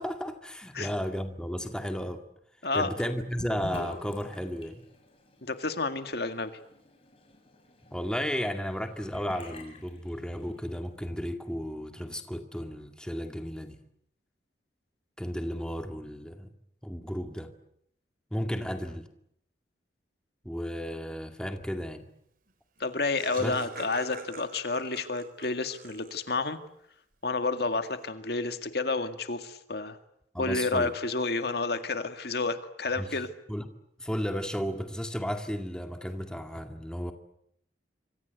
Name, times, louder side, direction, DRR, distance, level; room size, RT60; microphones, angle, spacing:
voice 1, 0.0-2.2 2.7-4.8 7.9-13.8 15.2-16.5 16.8-17.5 18.3-19.1 20.4-22.1 23.4-23.6 30.3-30.9 33.0-33.2 33.5-33.6 34.0-37.1, equal, 5° left, 6 dB, 2.1 m, -34 dB
Sink (filling or washing) / Bathtub (filling or washing), 3.4-10.7, left 1 dB, 30° left, 6.7 m, -47 dB
voice 2, 5.4-6.5 22.8-26.6 27.2-30.0 30.4-33.3, left 3 dB, 60° left, 9 dB, 2.0 m, -30 dB
Laughter, 22.5-22.6 22.8-26.4, right 3 dB, 50° right, 4.0 m, -45 dB
26.5 x 26.5 x 8.2 m, 0.73 s
head